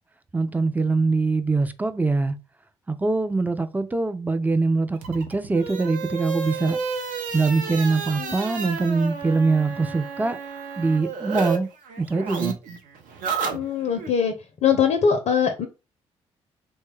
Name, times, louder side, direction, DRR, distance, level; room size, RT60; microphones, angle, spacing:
voice 1, 0.3-2.4 2.9-6.8 7.3-10.4 10.8-11.7 12.0-12.6, right 3 dB, 10° right, 0.4 m, -23 dB
sound 1, 5.0-11.6 11.8-14.1, right 6 dB, 60° right, 0.6 m, -31 dB
voice 2, 13.4-14.3 14.6-15.7, left 7 dB, 45° left, 0.5 m, -22 dB
3.1 x 2.1 x 3.3 m
figure-of-eight pair, 40°, 15 cm